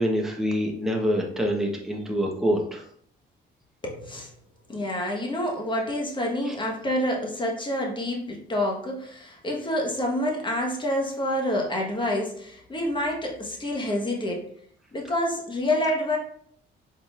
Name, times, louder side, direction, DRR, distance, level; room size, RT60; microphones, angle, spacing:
voice 1, 0.0-2.8 6.5-6.6, equal, ahead, -1 dB, 1.0 m, -26 dB
voice 2, 3.8-4.3 4.7-14.5 14.9-16.2, left 1 dB, 25° left, -1 dB, 1.3 m, -27 dB
4.5 x 3.8 x 2.5 m, 0.64 s
cardioid pair, 90°, 20 cm